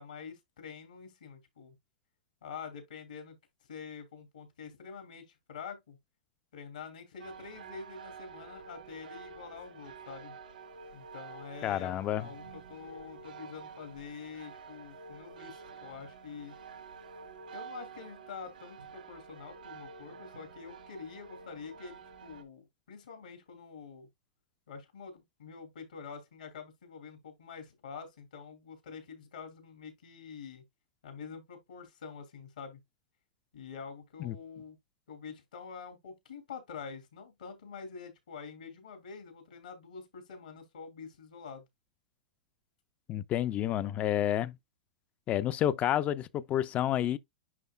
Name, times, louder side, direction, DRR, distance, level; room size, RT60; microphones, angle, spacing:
voice 1, 0.0-1.7 2.4-3.4 3.7-6.0 6.5-10.3 10.9-16.5 17.5-24.1 24.7-30.6 31.0-32.8 33.5-34.8 35.1-41.6, left 6 dB, 75° left, 3.1 m, -46 dB
sound 1, 7.2-22.4, right 5 dB, 85° right, 1.8 m, -49 dB
voice 2, 11.6-12.3 34.2-34.4 43.1-44.6 45.3-47.2, left 11 dB, 30° left, 0.6 m, -29 dB
11.0 x 3.7 x 2.3 m
hypercardioid pair, 115°, 4 cm